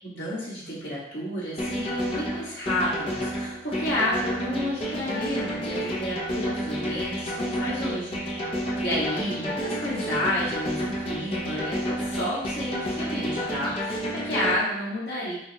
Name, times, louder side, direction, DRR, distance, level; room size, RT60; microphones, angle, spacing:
voice 1, 0.0-8.2 8.8-15.4, left 1 dB, 70° left, -7 dB, 1.7 m, -30 dB
sound 1, 1.6-14.6, equal, 30° left, 0.8 m, -30 dB
6.6 x 2.5 x 3.0 m, 0.81 s
head